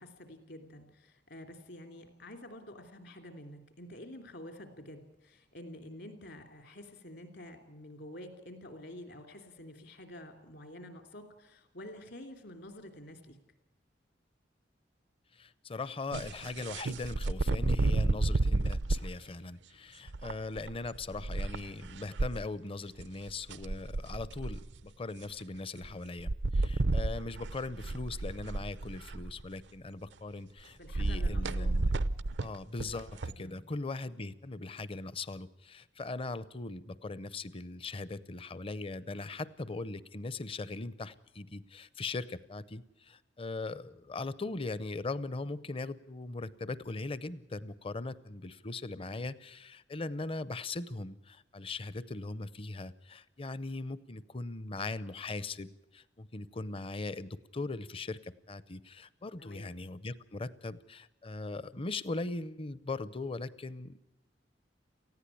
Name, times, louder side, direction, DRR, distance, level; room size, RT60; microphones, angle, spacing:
voice 1, 0.0-13.4 30.8-31.7 33.4-33.6 59.4-59.7, left 1 dB, 65° left, 6 dB, 3.0 m, -48 dB
voice 2, 15.3-32.0 32.4-64.0, left 3 dB, 30° left, 18 dB, 0.6 m, -40 dB
sound 1, 16.1-19.1 20.1-22.3 23.0-23.1 23.3-24.8 25.8-25.9 26.2-29.4 30.9-33.3, right 2 dB, 80° right, 0.6 m, -31 dB
19.0 x 15.0 x 9.8 m, 0.89 s
head